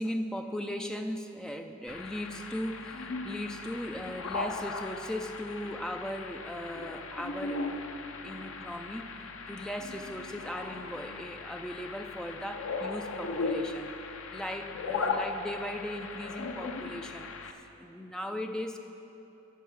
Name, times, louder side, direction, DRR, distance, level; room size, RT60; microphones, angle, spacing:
voice 1, 0.0-7.7 8.2-13.9 14.3-18.8, equal, 5° left, 5 dB, 0.4 m, -38 dB
sound 1, 1.9-17.5, left 3 dB, 70° left, 0.7 m, -37 dB
10.0 x 7.2 x 7.3 m, 3.0 s
head